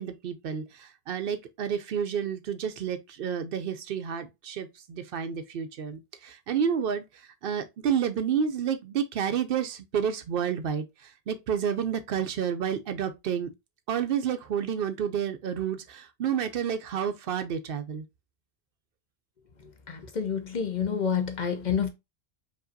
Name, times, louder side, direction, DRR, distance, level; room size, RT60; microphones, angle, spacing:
voice 1, 0.0-13.5 13.9-18.0, right 8 dB, 65° right, 0.7 m, -30 dB
voice 2, 19.9-21.9, left 7 dB, 50° left, 0.7 m, -28 dB
5.0 x 2.7 x 2.5 m
omnidirectional pair, 1.1 m